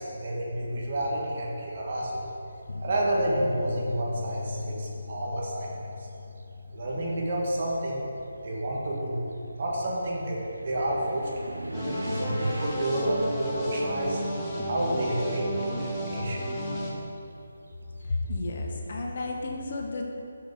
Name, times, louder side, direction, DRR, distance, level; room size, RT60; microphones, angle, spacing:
voice 1, 0.0-2.2 2.8-5.7 6.0-6.1 6.7-8.1 8.4-9.2 9.6-11.5 12.1-14.2 14.6-16.4, right 1 dB, 45° right, -3 dB, 2.1 m, -29 dB
sound 1, 2.7-7.7, left 4 dB, 70° left, 0.3 m, -40 dB
sound 2, 3.4-3.9 4.9-5.0 5.6-15.5 15.8-18.4, right 2 dB, 85° right, 0.8 m, -40 dB
sound 3, 11.7-16.9, equal, 15° left, 1.5 m, -33 dB
voice 2, 18.0-20.0, left 2 dB, 50° left, 0 dB, 1.4 m, -32 dB
10.5 x 6.2 x 5.2 m, 2.8 s
figure-of-eight pair, 150°, 0 cm